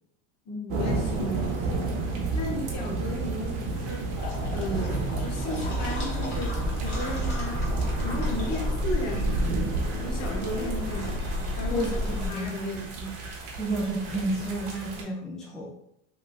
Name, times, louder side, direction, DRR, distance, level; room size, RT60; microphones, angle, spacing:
voice 1, 0.4-1.9 2.3-4.1 4.5-7.6 8.0-9.6 9.9-11.2 11.6-13.2, equal, 45° left, -1 dB, 1.2 m, -35 dB
sound 1, 0.7-15.0, right 3 dB, 55° right, 0.9 m, -32 dB
sound 2, 4.2-12.3, left 1 dB, 75° left, 1.0 m, -32 dB
sound 3, 4.2-9.3, left 2 dB, 30° left, 1.4 m, -35 dB
voice 2, 11.7-12.5 13.6-15.7, right 1 dB, ahead, -4 dB, 0.4 m, -31 dB
3.5 x 2.5 x 2.4 m, 0.77 s
supercardioid pair, 110°, 37 cm